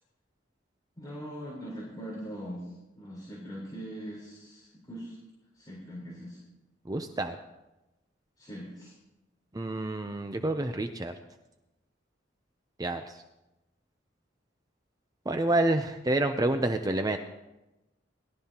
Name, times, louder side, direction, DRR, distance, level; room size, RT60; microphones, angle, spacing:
voice 1, 0.9-2.7 3.0-5.2 5.5-6.4 8.4-8.9, equal, 20° left, -7 dB, 4.2 m, -41 dB
voice 2, 6.9-7.4 9.5-11.1 12.8-13.1 15.3-17.2, right 2 dB, 20° right, 7 dB, 0.6 m, -28 dB
21.5 x 12.5 x 2.9 m, 0.99 s
head